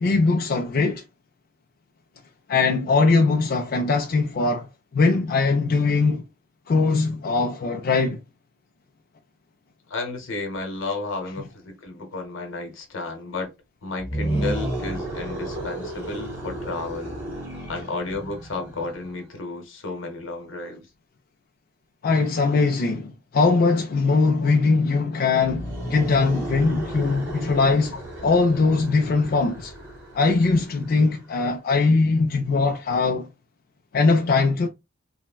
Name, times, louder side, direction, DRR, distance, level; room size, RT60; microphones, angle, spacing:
voice 1, 0.0-1.0 2.5-6.2 6.7-8.2 22.0-27.9 28.2-29.7 30.1-33.3 33.9-34.7, left 3 dB, 45° left, 0.3 m, -21 dB
voice 2, 9.9-13.5 13.8-17.2 17.7-20.9 24.4-24.5 27.9-28.0 28.6-28.7, left 3 dB, 75° left, 0.9 m, -32 dB
sound 1, 14.0-19.2 25.4-31.1, right 1 dB, 10° right, 1.1 m, -33 dB
3.2 x 2.1 x 2.2 m
head